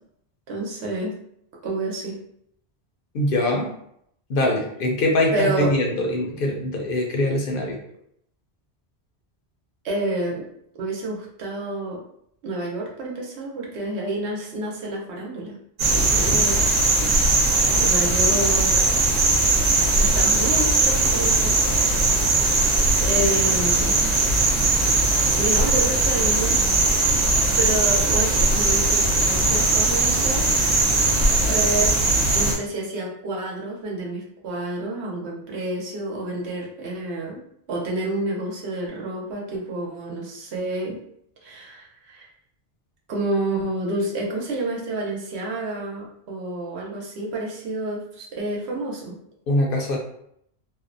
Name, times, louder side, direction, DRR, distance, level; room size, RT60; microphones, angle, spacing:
voice 1, 0.5-1.1 1.6-2.2 5.3-5.7 9.8-10.4 10.8-12.0 12.4-15.5 15.9-16.7 17.7-18.9 20.0-21.5 23.0-24.1 25.2-26.6 27.6-30.5 31.4-31.9 32.3-37.4 37.7-41.0 41.4-42.3 43.1-49.2, right 2 dB, 80° right, -2 dB, 1.0 m, -29 dB
voice 2, 3.1-3.7 4.3-7.8 16.0-16.4 49.5-50.0, left 1 dB, 65° left, 0 dB, 0.7 m, -23 dB
sound 1, 15.8-32.5, right 2 dB, 55° right, 0.9 m, -19 dB
2.6 x 2.0 x 2.5 m, 0.72 s
omnidirectional pair, 1.1 m